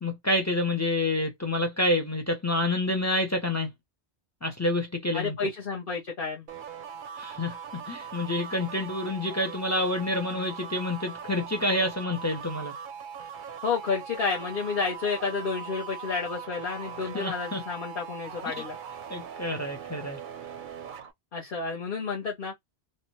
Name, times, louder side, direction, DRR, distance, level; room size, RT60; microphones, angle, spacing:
voice 1, 0.0-3.7 4.4-5.3 7.2-12.7 17.0-17.6 18.5-18.6 19.1-20.2, left 1 dB, 25° left, 0.3 m, -28 dB
voice 2, 5.1-6.4 13.6-18.8 21.3-22.5, left 5 dB, 55° left, 0.9 m, -30 dB
sound 1, 6.5-21.1, right 7 dB, 60° right, 0.6 m, -41 dB
2.7 x 2.2 x 2.9 m
omnidirectional pair, 1.1 m